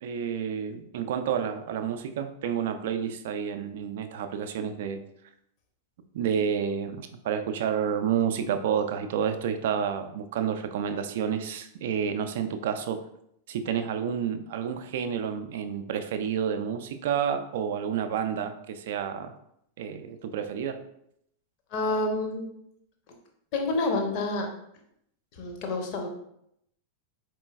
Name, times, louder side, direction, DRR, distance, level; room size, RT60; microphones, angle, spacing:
voice 1, 0.0-5.0 6.1-13.0 13.5-19.4 19.8-20.8, right 8 dB, 55° right, 9 dB, 0.3 m, -30 dB
voice 2, 21.7-22.5 23.5-24.5 25.4-26.1, left 2 dB, 45° left, 3 dB, 0.7 m, -28 dB
4.4 x 2.9 x 2.3 m, 0.74 s
figure-of-eight pair, 90°, 0 cm